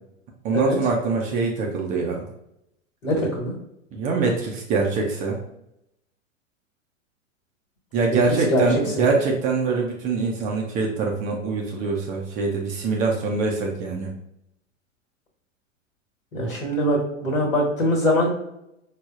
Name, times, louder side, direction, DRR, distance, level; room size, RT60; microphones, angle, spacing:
voice 1, 0.4-2.2 3.1-3.2 3.9-5.4 7.9-14.1, right 4 dB, 20° right, 0 dB, 0.4 m, -24 dB
voice 2, 3.0-3.5 8.1-8.2 8.5-8.6 9.0-9.1 16.3-18.3, equal, 80° left, -2 dB, 1.2 m, -22 dB
4.7 x 2.0 x 2.3 m, 0.82 s
figure-of-eight pair, 100°, 39 cm